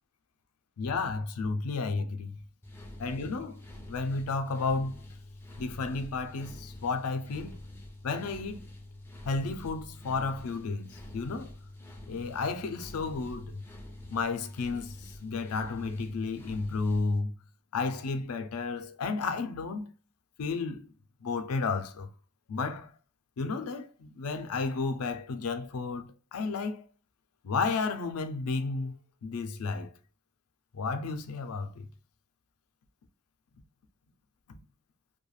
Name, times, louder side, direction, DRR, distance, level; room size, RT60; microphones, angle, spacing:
voice 1, 0.8-2.4 3.0-3.6 3.9-5.1 5.6-7.6 8.0-8.6 9.2-11.5 12.1-13.6 14.1-17.3 17.7-19.9 20.4-20.9 21.2-22.1 22.5-22.9 23.4-26.9 27.4-29.9 30.7-31.9 34.5-34.6, left 4 dB, 90° left, 0.4 m, -32 dB
sound 1, 2.6-17.2, left 1 dB, 10° left, 0.4 m, -47 dB
2.3 x 2.2 x 3.0 m
head